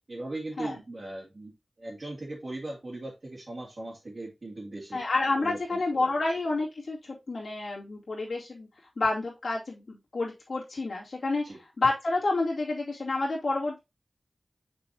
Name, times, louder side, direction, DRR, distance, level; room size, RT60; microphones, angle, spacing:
voice 1, 0.1-1.5 1.8-5.0 5.4-5.8 11.4-11.6, right 2 dB, 50° right, -6 dB, 2.4 m, -38 dB
voice 2, 4.9-8.7 9.0-11.4 11.8-13.8, left 2 dB, 80° left, -6 dB, 2.6 m, -29 dB
6.8 x 5.5 x 2.9 m, 0.23 s
wide cardioid pair, 90°, 0 cm